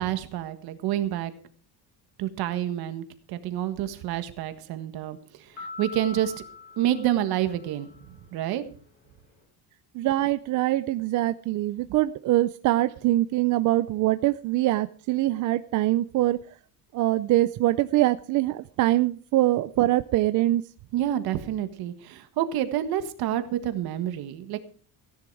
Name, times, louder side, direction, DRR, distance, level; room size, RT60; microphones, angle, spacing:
voice 1, 0.0-1.3 2.2-6.4 6.8-7.9 8.3-8.6 20.9-24.6, right 12 dB, 65° right, 10 dB, 1.6 m, -28 dB
sound 1, 5.6-8.1, left 4 dB, 25° left, 6.4 m, -43 dB
voice 2, 9.9-16.4 16.9-20.6, right 15 dB, 50° right, 12 dB, 0.5 m, -23 dB
16.0 x 11.0 x 4.7 m, 0.43 s
cardioid pair, 175°, 40 cm